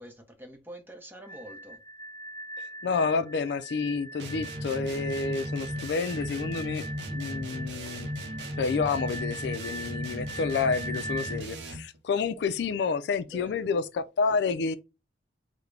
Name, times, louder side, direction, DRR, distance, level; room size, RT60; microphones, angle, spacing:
voice 1, 0.0-1.8 13.3-13.7, equal, 10° right, 0.7 m, -46 dB
sound 1, 1.2-11.4, right 1 dB, 35° left, 0.6 m, -42 dB
voice 2, 2.8-6.9 7.1-8.1 8.6-14.8, left 5 dB, 65° left, 0.3 m, -29 dB
sound 2, 4.2-12.0, equal, 70° right, 0.7 m, -36 dB
3.5 x 2.1 x 3.2 m
head